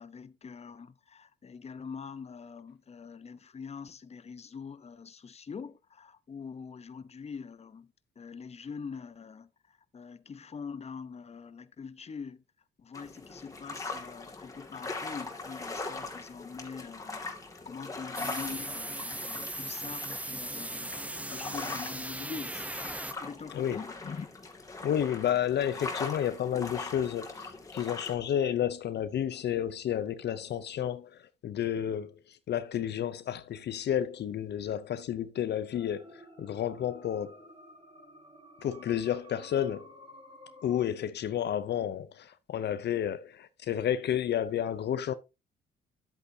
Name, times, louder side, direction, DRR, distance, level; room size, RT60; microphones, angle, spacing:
voice 1, 0.0-12.4 12.8-22.7 23.2-24.3, left 5 dB, 30° left, 0.8 m, -44 dB
sound 1, 12.9-28.1, left 3 dB, 15° left, 2.1 m, -41 dB
sound 2, 18.1-23.1, right 1 dB, 5° right, 0.8 m, -38 dB
voice 2, 24.8-37.4 38.6-40.0 40.6-45.1, left 10 dB, 60° left, 0.6 m, -31 dB
sound 3, 35.7-40.8, right 1 dB, 25° right, 5.0 m, -52 dB
10.5 x 8.2 x 2.7 m
cardioid pair, 90°, 20 cm